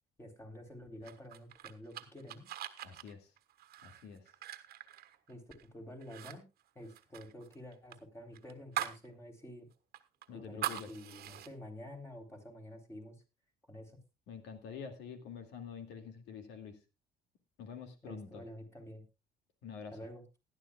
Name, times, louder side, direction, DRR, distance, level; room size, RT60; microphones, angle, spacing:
voice 1, 0.2-2.4 5.3-5.4 5.7-6.4 6.8-9.7 10.3-13.2 13.7-14.0 18.0-19.0 19.9-20.2, left 1 dB, 15° left, 3 dB, 3.7 m, -49 dB
sound 1, 1.0-5.7 6.0-6.4 6.6-9.1 9.4-9.5 9.9-11.5, right 11 dB, 65° right, 1.3 m, -42 dB
voice 2, 2.8-3.3 3.8-4.3 10.3-10.9 14.3-16.8 17.6-18.4 19.6-20.0, left 6 dB, 85° left, 6 dB, 2.3 m, -47 dB
18.5 x 11.5 x 2.4 m, 0.26 s
cardioid pair, 110°, 17 cm